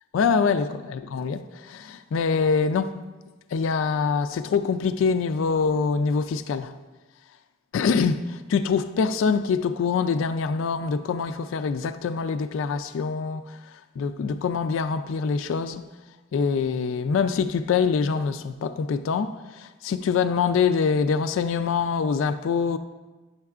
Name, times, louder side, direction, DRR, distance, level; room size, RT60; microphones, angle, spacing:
voice 1, 0.1-3.0 3.5-6.7 7.7-15.8 16.3-22.8, left 5 dB, 85° left, 0.3 m, -25 dB
9.3 x 6.6 x 2.4 m
head